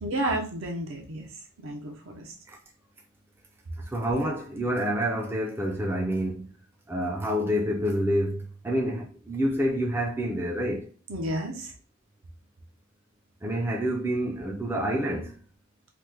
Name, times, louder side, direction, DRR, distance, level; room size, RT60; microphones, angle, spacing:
voice 1, 0.0-2.3 11.1-11.7, right 1 dB, 60° right, 0.6 m, -32 dB
voice 2, 3.8-6.5 6.9-10.9 13.4-15.4, equal, 10° right, 0.4 m, -28 dB
3.0 x 2.1 x 3.3 m
head